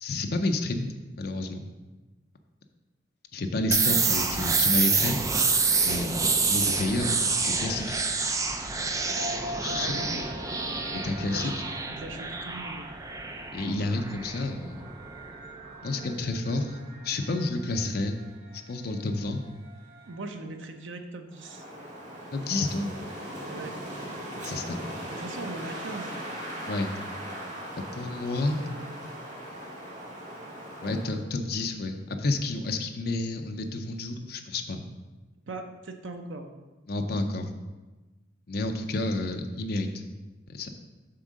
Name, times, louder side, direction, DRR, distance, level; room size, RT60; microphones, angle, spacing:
voice 1, 0.0-1.7 3.3-5.2 5.8-8.0 9.5-10.3 11.0-11.5 13.5-14.9 15.8-16.8 17.0-18.2 18.7-19.4 22.3-22.9 24.4-24.8 26.7-26.9 27.9-28.7 30.8-34.9 36.9-37.5 38.5-40.0 40.5-40.7, left 2 dB, 55° left, 4 dB, 0.6 m, -30 dB
sound 1, 3.7-15.3, right 4 dB, 15° right, 0.5 m, -27 dB
voice 2, 3.8-4.3 9.7-10.2 11.2-11.6 11.9-12.9 20.1-21.6 23.5-23.7 25.1-26.2 28.3-29.0 35.5-36.5, right 2 dB, 85° right, 5 dB, 0.8 m, -40 dB
sound 2, 9.1-20.5, equal, 60° right, 1.5 m, -43 dB
Wind, 21.3-31.2, equal, 40° right, 1.3 m, -39 dB
7.6 x 3.6 x 6.3 m, 1.2 s
head